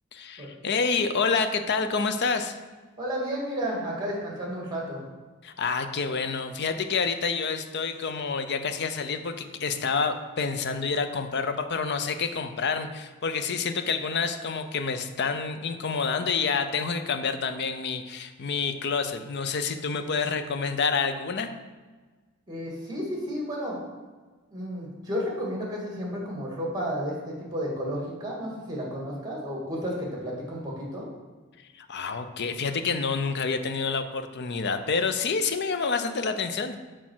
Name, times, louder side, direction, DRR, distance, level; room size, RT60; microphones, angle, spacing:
voice 1, 0.1-2.6 5.4-21.5 31.7-36.8, left 5 dB, 50° left, 8 dB, 0.6 m, -28 dB
voice 2, 3.0-5.0 22.5-23.8 24.5-31.0, equal, 20° right, -2 dB, 1.9 m, -32 dB
6.3 x 4.6 x 6.1 m, 1.4 s
head